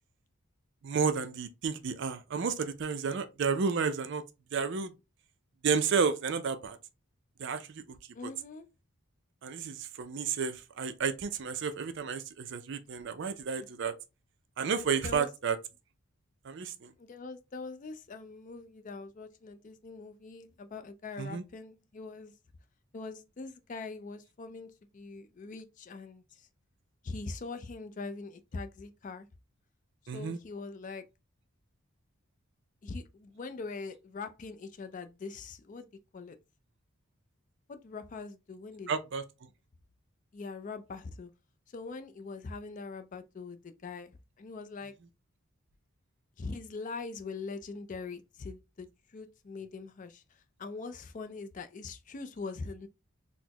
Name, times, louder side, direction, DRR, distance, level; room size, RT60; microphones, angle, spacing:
voice 1, 0.8-4.2 4.5-4.9 5.6-6.8 7.4-8.0 8.2-8.3 9.4-13.9 14.6-15.6 16.4-16.9 21.2-21.4 30.1-30.4 38.9-39.2, right 5 dB, 55° right, 0.4 m, -31 dB
voice 2, 8.1-8.7 13.6-13.7 15.0-15.3 17.0-22.3 22.9-26.5 27.0-29.3 30.1-31.0 32.8-35.9 36.1-36.4 37.7-38.9 40.3-41.3 41.7-44.9 46.4-48.9 49.1-50.2 50.6-52.9, left 4 dB, 35° left, 0.3 m, -42 dB
4.1 x 2.0 x 2.8 m
head